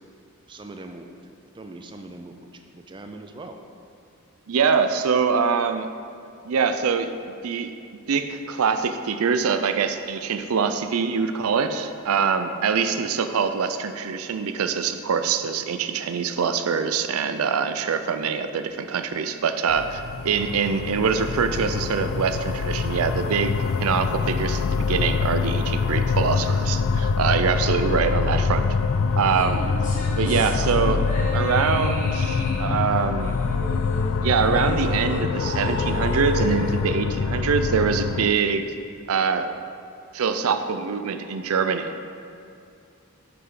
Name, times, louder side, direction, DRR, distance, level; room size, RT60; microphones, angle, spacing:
voice 1, 0.5-2.4 2.7-3.6 29.4-29.6, right 2 dB, 20° right, 5 dB, 0.4 m, -41 dB
voice 2, 4.5-5.9 6.4-7.7 8.1-28.7 29.2-29.7 30.2-31.0 31.3-33.4 34.2-38.7 39.1-39.5 40.1-41.9, right 6 dB, 85° right, 9 dB, 0.5 m, -24 dB
sound 1, 19.7-38.3, left 5 dB, 70° left, 0.3 m, -25 dB
sound 2, 29.3-37.9, left 1 dB, 35° left, 1.2 m, -33 dB
8.8 x 6.7 x 3.8 m, 2.5 s
head